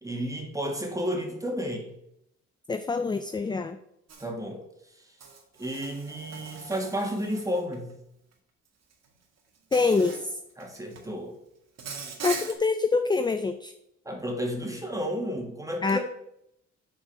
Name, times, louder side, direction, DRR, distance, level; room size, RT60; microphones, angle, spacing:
voice 1, 0.0-1.9 4.2-4.6 5.0-5.1 5.6-7.9 10.6-11.3 14.1-16.0, equal, 10° right, 2 dB, 2.1 m, -32 dB
voice 2, 2.7-3.8 9.7-10.4 12.2-13.7 15.8-16.0, left 4 dB, 15° left, 9 dB, 0.4 m, -25 dB
Insect, 4.1-4.3 5.2-7.8 8.9-9.1 9.7-10.3 10.6-11.1 11.8-12.5, right 5 dB, 60° right, 1.7 m, -40 dB
8.5 x 4.6 x 5.8 m, 0.79 s
cardioid pair, 90°, 30 cm